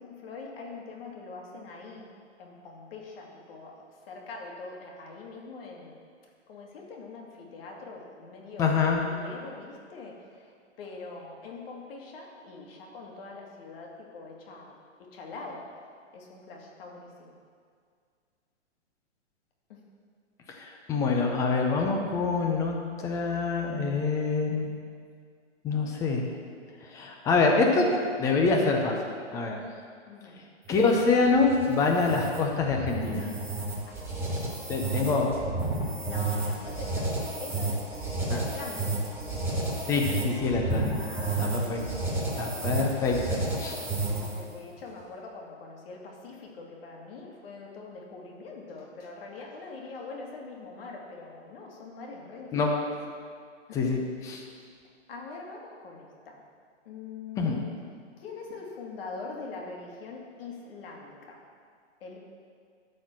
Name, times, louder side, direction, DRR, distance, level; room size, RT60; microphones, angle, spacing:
voice 1, 0.0-2.1 2.4-3.8 4.1-6.0 6.5-8.8 9.1-15.7 16.1-17.3 19.7-19.8 30.1-30.4 33.9-34.1 34.4-35.1 36.0-39.1 40.8-41.6 43.7-52.8 53.7-54.0 54.6-54.7 55.1-56.4 56.9-57.7 58.2-61.4 62.0-62.2, left 3 dB, 50° left, -1 dB, 2.0 m, -43 dB
voice 2, 8.6-9.0 20.6-24.7 25.6-26.3 26.9-29.0 29.3-29.6 30.7-33.3 34.7-35.3 38.3-38.4 39.9-41.0 41.4-41.8 42.3-43.8 52.5-52.7 53.7-54.0 54.3-54.4 57.4-57.6, left 4 dB, 10° left, 1 dB, 0.5 m, -25 dB
sound 1, 30.6-44.5, right 2 dB, 5° right, 1.5 m, -31 dB
12.5 x 4.3 x 6.2 m, 2.1 s
hypercardioid pair, 145°, 37 cm